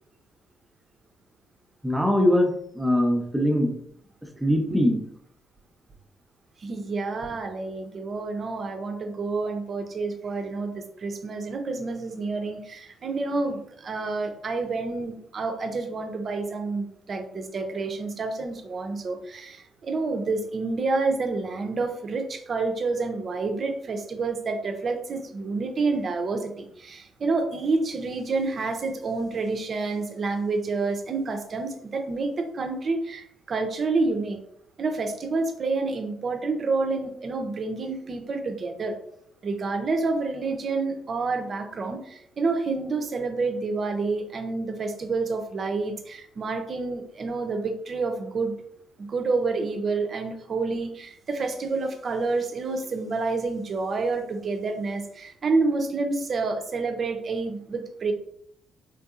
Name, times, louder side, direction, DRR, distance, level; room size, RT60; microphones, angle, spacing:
voice 1, 1.8-2.5 2.8-3.7 4.4-5.0, left 1 dB, 5° right, 2 dB, 0.7 m, -21 dB
voice 2, 6.6-34.4 34.8-39.0 39.4-48.5 49.0-58.1, right 3 dB, 45° right, 6 dB, 0.6 m, -28 dB
3.7 x 2.7 x 2.4 m, 0.70 s
cardioid pair, 90°, 0 cm